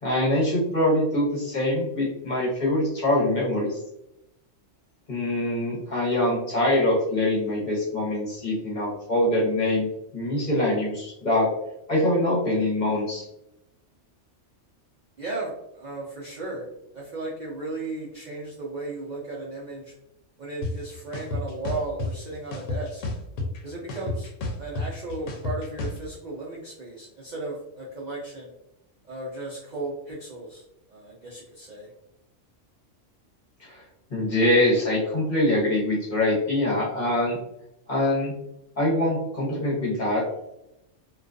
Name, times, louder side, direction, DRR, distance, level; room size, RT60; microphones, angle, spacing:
voice 1, 0.0-3.8 5.1-9.9 10.1-11.5 11.9-13.2 33.6-33.8 34.1-37.4 37.9-38.3 38.8-40.2, left 1 dB, 45° left, -5 dB, 0.8 m, -24 dB
voice 2, 15.2-16.7 16.9-19.9 20.4-23.0 23.6-24.3 24.6-28.5 29.0-30.6 30.9-31.9, right 2 dB, 55° right, -5 dB, 0.5 m, -35 dB
sound 1, 20.6-20.7 21.1-22.1 22.5-23.6 23.9-26.0, left 3 dB, 80° left, 0.9 m, -30 dB
2.3 x 2.3 x 2.4 m, 0.86 s
omnidirectional pair, 1.3 m